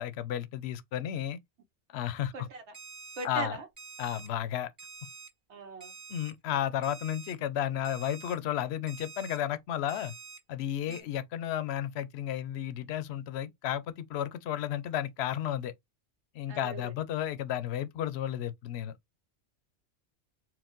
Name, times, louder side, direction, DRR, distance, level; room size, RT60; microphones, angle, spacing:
voice 1, 0.0-1.4 1.9-2.3 3.2-3.6 4.0-4.7 6.1-10.1 10.5-15.7 16.3-18.9, left 11 dB, 70° left, 0.8 m, -33 dB
voice 2, 2.3-2.7 3.2-3.7 5.5-5.9 10.9-11.1 16.5-16.9, right 4 dB, 70° right, 1.1 m, -40 dB
Alarm, 2.7-3.3 3.8-4.3 4.8-5.3 5.8-6.3 6.8-7.3 7.8-8.3 8.9-9.4 9.9-10.4 10.9-11.0, right 5 dB, 25° right, 1.5 m, -47 dB
4.6 x 2.2 x 3.7 m
omnidirectional pair, 1.2 m